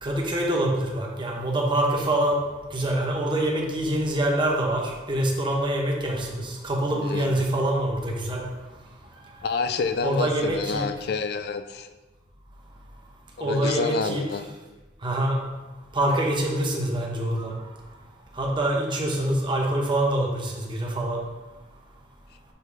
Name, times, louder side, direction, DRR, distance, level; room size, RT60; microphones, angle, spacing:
voice 1, 0.0-2.4 2.7-8.4 10.0-10.8 13.4-14.2 15.0-15.4 15.9-17.6 18.3-21.2, right 1 dB, 25° right, -1 dB, 1.0 m, -25 dB
voice 2, 6.9-7.3 9.4-11.9 13.4-14.5, left 4 dB, 60° left, 9 dB, 0.4 m, -28 dB
6.9 x 3.2 x 4.7 m, 1.2 s
head